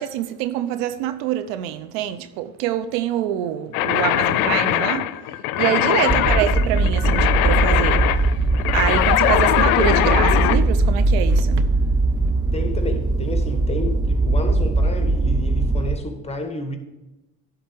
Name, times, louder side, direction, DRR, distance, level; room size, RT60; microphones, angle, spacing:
voice 1, 0.0-5.1 5.6-8.1 8.7-11.7 12.2-12.3, right 11 dB, 70° right, 0.7 m, -25 dB
sound 1, 3.7-10.6, left 13 dB, 80° left, 0.5 m, -21 dB
sound 2, 6.1-16.0, right 2 dB, 10° right, 0.5 m, -20 dB
voice 2, 12.5-16.8, left 2 dB, 15° left, 1.5 m, -30 dB
10.5 x 4.0 x 6.2 m
hypercardioid pair, 65°, 42 cm